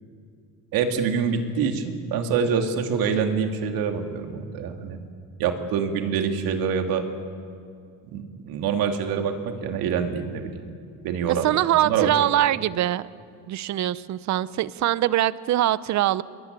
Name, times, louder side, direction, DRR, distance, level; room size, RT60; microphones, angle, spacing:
voice 1, 0.7-5.0 5.4-7.0 8.1-10.7 11.0-11.5 11.8-12.3, right 6 dB, 75° right, 4 dB, 2.8 m, -25 dB
voice 2, 11.4-13.1 13.5-16.2, right 13 dB, 50° right, 17 dB, 0.8 m, -23 dB
24.5 x 22.5 x 9.6 m, 2.3 s
cardioid pair, 135°, 35 cm